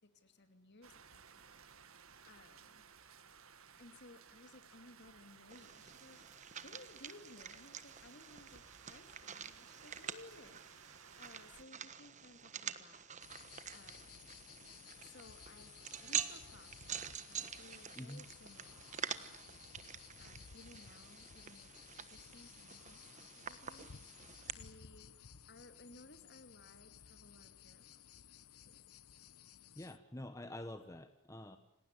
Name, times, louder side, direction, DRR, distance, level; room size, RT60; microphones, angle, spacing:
voice 1, 0.0-1.6 1.9-2.8 3.8-6.3 6.6-13.1 13.7-14.3 15.0-15.7 16.0-19.5 20.2-23.9 24.6-25.2 25.5-28.8, left 2 dB, 50° left, 8 dB, 2.8 m, -60 dB
sound 1, 0.8-11.6, right 6 dB, 70° right, 1.8 m, -59 dB
sound 2, 5.5-24.5, right 8 dB, 30° right, 1.3 m, -47 dB
sound 3, 13.2-30.0, left 8 dB, 80° left, 0.9 m, -57 dB
voice 2, 29.7-31.6, left 1 dB, 15° left, 8 dB, 1.2 m, -47 dB
28.5 x 19.0 x 9.9 m, 0.79 s
head